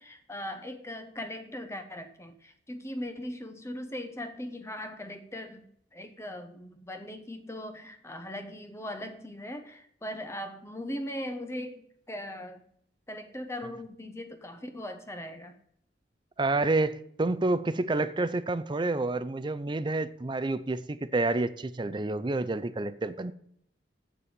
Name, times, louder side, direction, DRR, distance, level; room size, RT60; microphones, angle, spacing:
voice 1, 0.0-5.7 5.9-12.6 13.1-15.5, left 1 dB, 15° left, 7 dB, 1.0 m, -39 dB
voice 2, 16.4-23.3, right 2 dB, 25° right, 14 dB, 0.5 m, -29 dB
7.7 x 6.7 x 7.4 m, 0.68 s
head